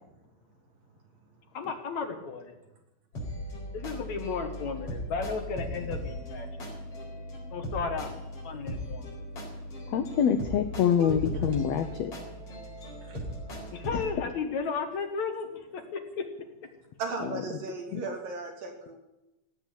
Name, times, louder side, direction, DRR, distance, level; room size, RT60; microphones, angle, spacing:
voice 1, 1.5-2.6 3.7-6.5 7.5-8.1 8.4-9.1 13.7-16.2, left 5 dB, 60° left, 6 dB, 2.4 m, -34 dB
sound 1, 3.1-14.0, equal, 40° left, 5.1 m, -38 dB
voice 2, 9.9-12.1 13.9-14.0 17.9-18.0, left 8 dB, 85° left, 9 dB, 1.5 m, -26 dB
voice 3, 11.0-11.5 13.0-13.9 17.0-19.0, right 3 dB, 65° right, 2 dB, 4.5 m, -37 dB
17.0 x 8.5 x 9.9 m, 0.95 s
omnidirectional pair, 4.2 m